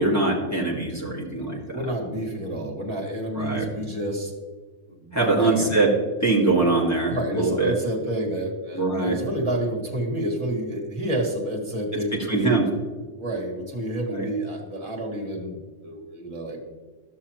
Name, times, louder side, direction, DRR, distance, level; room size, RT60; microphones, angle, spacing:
voice 1, 0.0-1.8 3.4-3.7 5.1-5.9 6.2-7.7 8.7-9.2 12.1-12.7 14.1-14.2, right 2 dB, 10° left, -3 dB, 2.0 m, -22 dB
voice 2, 1.4-4.3 4.9-5.8 7.1-12.6 13.2-16.6, right 1 dB, 20° right, -2 dB, 2.0 m, -29 dB
13.5 x 6.5 x 3.0 m, 1.4 s
omnidirectional pair, 1.4 m